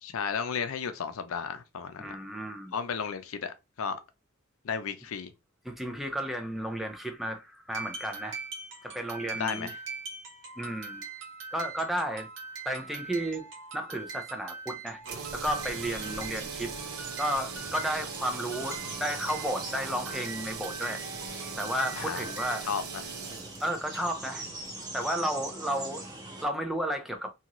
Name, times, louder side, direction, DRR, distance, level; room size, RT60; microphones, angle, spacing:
voice 1, 0.0-2.1 2.7-4.0 4.6-5.3 9.3-9.8 16.1-16.3 22.0-22.3 22.6-22.8, left 6 dB, 75° left, 0.5 m, -34 dB
voice 2, 2.0-2.7 5.6-8.4 8.8-9.7 10.6-11.0 11.5-12.3 12.7-13.5 13.7-15.0 15.3-16.7 17.2-21.0 21.6-22.7 23.6-24.5 24.9-26.1 26.4-27.3, equal, ahead, 0.4 m, -33 dB
sound 1, 7.7-22.8, right 4 dB, 60° right, 1.0 m, -42 dB
sound 2, 15.0-25.1, right 6 dB, 80° right, 0.7 m, -41 dB
sound 3, 15.1-26.5, right 1 dB, 20° right, 0.9 m, -43 dB
2.8 x 2.5 x 2.9 m
head